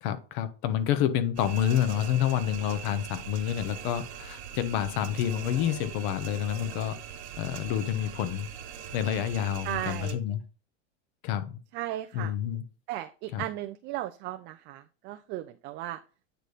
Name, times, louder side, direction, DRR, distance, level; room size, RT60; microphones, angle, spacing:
voice 1, 0.0-7.0 7.4-8.5 8.9-10.4 11.2-11.5 12.1-12.6 13.3-13.4, left 10 dB, 55° left, 1.1 m, -28 dB
sound 1, 1.4-10.1, right 8 dB, 80° right, 1.5 m, -41 dB
voice 2, 9.6-10.2 11.7-12.3 12.9-16.0, right 14 dB, 35° right, 0.4 m, -36 dB
9.0 x 3.4 x 4.0 m
supercardioid pair, 135°, 33 cm